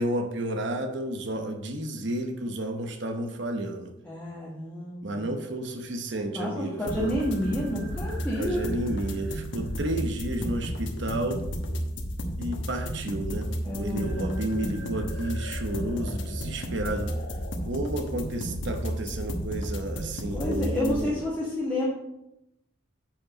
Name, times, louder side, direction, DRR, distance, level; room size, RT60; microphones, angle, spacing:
voice 1, 0.0-3.9 5.0-7.1 8.4-11.4 12.4-17.1 17.6-21.2, right 1 dB, 65° right, 5 dB, 0.9 m, -31 dB
voice 2, 4.0-5.3 6.3-8.7 13.6-14.9 20.3-21.9, left 1 dB, 10° left, -8 dB, 1.5 m, -30 dB
sound 1, 6.9-21.0, equal, 70° left, 1.1 m, -33 dB
7.4 x 5.3 x 5.0 m, 0.85 s
head